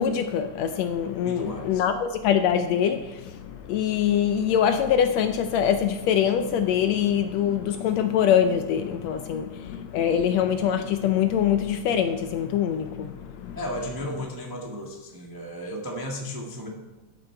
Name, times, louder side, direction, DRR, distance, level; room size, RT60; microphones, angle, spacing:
voice 1, 0.0-13.6, left 9 dB, 75° left, 1.6 m, -24 dB
voice 2, 1.2-1.8 13.5-16.7, equal, 35° right, 0.3 m, -34 dB
14.0 x 8.4 x 4.5 m
omnidirectional pair, 3.5 m